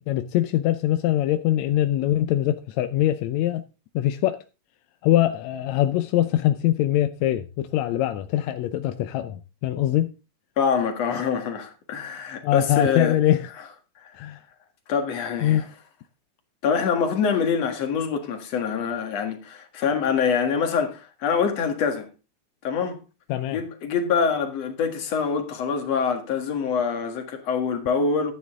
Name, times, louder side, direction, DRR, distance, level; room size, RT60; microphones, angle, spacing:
voice 1, 0.0-3.6 4.0-4.4 5.0-10.1 12.4-13.5 14.1-14.4 15.4-15.7 23.3-23.6, left 13 dB, 75° left, 1.8 m, -23 dB
voice 2, 10.6-13.2 14.9-15.6 16.6-22.1 22.6-23.0 23.5-28.3, left 6 dB, 60° left, 2.8 m, -25 dB
12.0 x 9.5 x 3.7 m
omnidirectional pair, 3.6 m